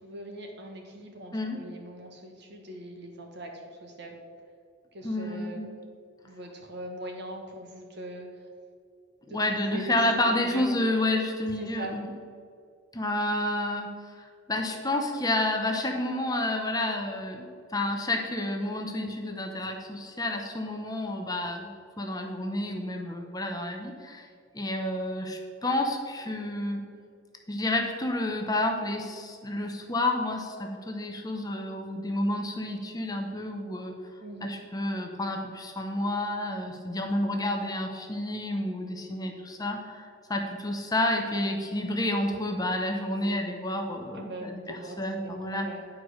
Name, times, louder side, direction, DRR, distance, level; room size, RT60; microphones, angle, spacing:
voice 1, 0.0-4.1 4.9-5.7 6.2-8.5 9.3-10.7 11.6-12.0 34.2-34.6 44.1-45.8, right 1 dB, 55° right, 2 dB, 1.4 m, -41 dB
voice 2, 5.0-5.7 9.3-12.1 12.9-21.7 22.0-24.3 24.5-26.9 27.5-34.0 34.4-45.7, left 1 dB, 20° left, 3 dB, 0.7 m, -30 dB
10.0 x 4.7 x 6.4 m, 2.3 s
head